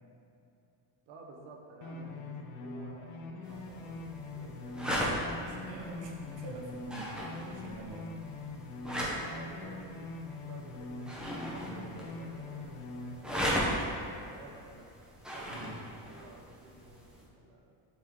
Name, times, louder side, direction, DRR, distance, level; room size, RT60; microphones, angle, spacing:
voice 1, 1.1-5.1 9.2-12.8 13.1-14.9 15.3-17.8, right 2 dB, 90° right, 0 dB, 1.1 m, -52 dB
sound 1, 1.8-13.1, left 3 dB, 45° left, 0.5 m, -43 dB
voice 2, 1.9-2.2 4.8-5.0 5.4-8.1 11.6-11.9 15.5-15.8, right 2 dB, 70° right, 0 dB, 1.1 m, -45 dB
sound 2, 3.4-17.2, equal, ahead, 0.6 m, -38 dB
7.8 x 3.8 x 3.7 m, 2.6 s
cardioid pair, 170°, 44 cm